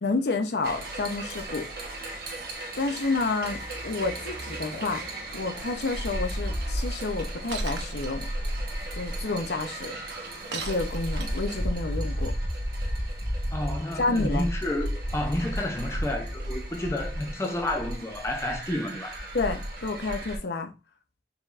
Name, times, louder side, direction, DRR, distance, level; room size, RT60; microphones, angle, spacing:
voice 1, 0.0-1.7 2.8-8.3 9.0-9.9 10.5-12.3 14.0-14.4 19.3-20.7, left 3 dB, 70° left, 0.6 m, -30 dB
sound 1, 0.6-20.4, equal, 55° right, 1.1 m, -33 dB
Shatter, 7.5-8.1 10.5-11.5, right 5 dB, 90° right, 0.8 m, -37 dB
voice 2, 13.5-19.2, left 1 dB, 15° left, 0.5 m, -30 dB
4.9 x 3.3 x 2.5 m
head